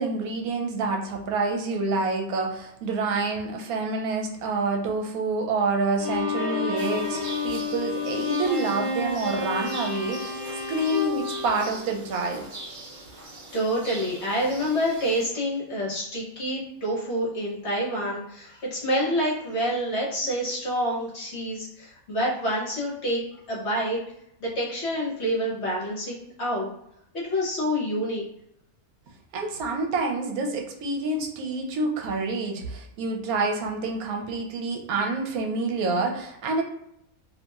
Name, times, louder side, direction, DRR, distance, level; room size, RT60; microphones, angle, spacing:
voice 1, 0.0-7.2 7.4-10.4 10.7-12.4 29.3-36.6, right 3 dB, 80° right, 2 dB, 1.0 m, -27 dB
Bowed string instrument, 6.0-12.3, left 4 dB, 30° left, 1.5 m, -30 dB
sound 1, 6.8-15.3, right 2 dB, 60° right, 0.5 m, -42 dB
voice 2, 13.5-23.2 23.5-24.0 24.4-26.7 27.1-28.2, equal, 55° left, -5 dB, 1.0 m, -27 dB
2.9 x 2.6 x 2.2 m, 0.76 s
omnidirectional pair, 1.5 m